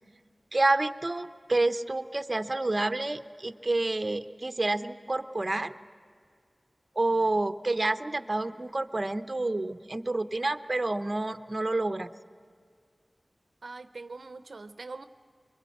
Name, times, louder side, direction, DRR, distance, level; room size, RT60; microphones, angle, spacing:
voice 1, 0.5-5.7 7.0-12.1, right 2 dB, 45° right, 9 dB, 0.8 m, -28 dB
voice 2, 13.6-15.1, right 3 dB, 80° right, 10 dB, 0.6 m, -42 dB
24.0 x 22.0 x 8.6 m, 2.1 s
wide cardioid pair, 45°, 0 cm